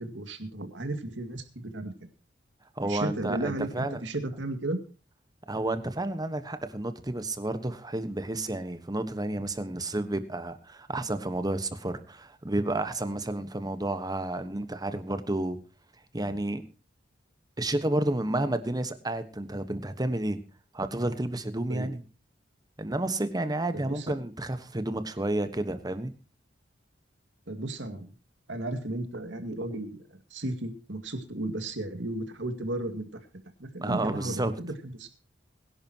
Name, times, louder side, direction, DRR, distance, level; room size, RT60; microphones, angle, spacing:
voice 1, 0.0-1.9 2.8-4.8 21.7-21.9 23.7-24.2 27.5-28.1 28.5-33.2 33.6-35.1, right 1 dB, 75° right, 7 dB, 2.2 m, -34 dB
voice 2, 2.8-4.0 5.5-15.6 16.1-16.6 17.6-20.4 20.7-22.0 22.8-26.1 33.8-34.5, right 1 dB, 20° right, 10 dB, 1.2 m, -31 dB
22.0 x 11.0 x 2.9 m, 0.33 s
head